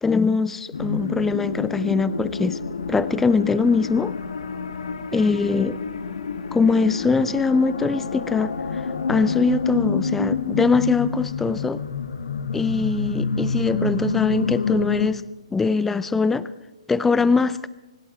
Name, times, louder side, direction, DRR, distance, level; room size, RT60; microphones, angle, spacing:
voice 1, 0.0-2.6 2.9-4.1 5.1-5.8 6.5-8.8 9.1-11.8 12.5-15.2 15.5-16.5 16.9-17.7, left 4 dB, 5° left, 16 dB, 0.4 m, -22 dB
sound 1, 0.7-15.1, left 5 dB, 70° left, 1.2 m, -28 dB
25.0 x 11.5 x 4.3 m, 1.0 s
figure-of-eight pair, 135°, 3 cm